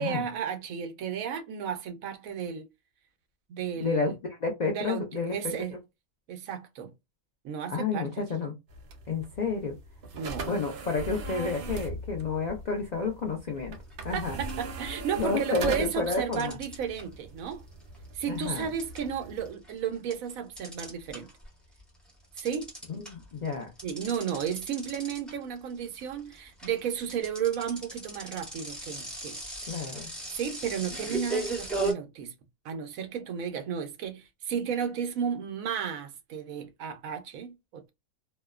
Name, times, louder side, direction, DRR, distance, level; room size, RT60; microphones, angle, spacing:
voice 1, 0.0-2.6 3.5-4.1 4.7-5.8 6.3-6.9 7.4-8.1 10.1-10.5 14.1-17.6 18.1-21.3 22.4-22.7 23.8-29.4 30.3-32.3 32.6-37.9, right 8 dB, 75° right, 1.0 m, -33 dB
voice 2, 3.8-4.1 4.4-5.5 7.7-8.5 9.1-9.8 10.5-13.8 14.0-14.4 15.2-16.6 18.3-18.7 22.9-23.7 29.7-30.1, left 4 dB, 85° left, 0.3 m, -30 dB
sound 1, 8.7-19.5, right 3 dB, 60° right, 0.6 m, -40 dB
sound 2, 13.9-14.2 14.5-15.4 16.1-21.5 21.8-31.9, right 2 dB, ahead, 0.8 m, -37 dB
2.6 x 2.1 x 2.3 m
omnidirectional pair, 1.5 m